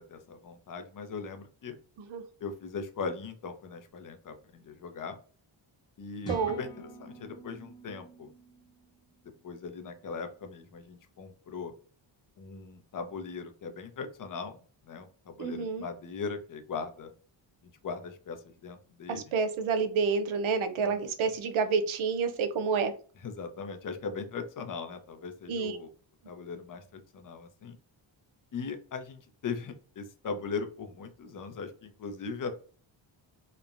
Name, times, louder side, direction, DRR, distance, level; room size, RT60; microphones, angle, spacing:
voice 1, 0.0-1.8 2.4-5.2 6.0-8.3 9.4-11.7 12.4-14.6 14.8-17.1 17.8-19.3 20.8-21.0 23.2-25.9 26.3-27.8 28.5-32.6, left 5 dB, 40° left, 7 dB, 0.6 m, -39 dB
sound 1, 6.2-10.0, right 2 dB, 10° left, 0.8 m, -46 dB
voice 2, 6.3-6.6 15.4-15.8 19.3-22.9 25.5-25.8, right 5 dB, 75° right, 8 dB, 0.6 m, -28 dB
3.0 x 2.1 x 2.4 m, 0.41 s
cardioid pair, 90°, 48 cm